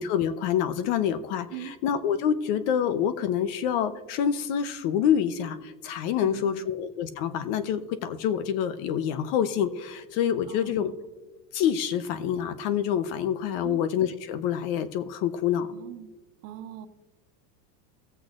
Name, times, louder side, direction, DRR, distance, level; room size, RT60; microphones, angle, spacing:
voice 1, 0.0-10.9 11.5-15.7, left 9 dB, 55° left, 12 dB, 0.9 m, -27 dB
voice 2, 6.2-6.7 10.4-10.9 13.6-13.8 15.7-16.1 16.4-16.9, right 11 dB, 70° right, 8 dB, 1.2 m, -41 dB
18.5 x 8.0 x 2.5 m, 1.2 s
supercardioid pair, 130°, 48 cm